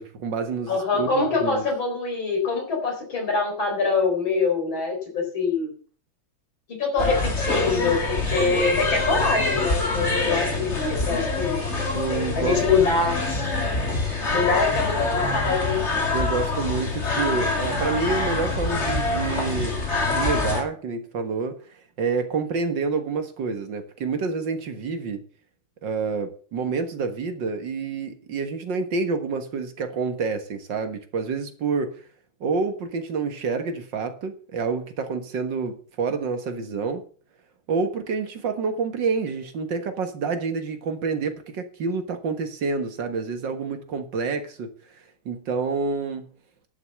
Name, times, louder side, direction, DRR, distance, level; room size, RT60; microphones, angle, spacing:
voice 1, 0.0-1.6 11.9-13.0 14.3-14.4 16.1-19.8 20.0-21.6 22.0-25.2 25.8-32.0 32.4-37.0 37.7-44.7 45.3-46.3, right 4 dB, 65° right, 8 dB, 2.2 m, -28 dB
voice 2, 0.7-5.7 6.8-11.6 12.3-13.2 14.3-15.8, left 4 dB, 85° left, 1 dB, 4.9 m, -24 dB
sound 1, 7.0-20.6, left 3 dB, 35° left, 2.9 m, -25 dB
11.0 x 8.0 x 6.7 m, 0.42 s
omnidirectional pair, 2.1 m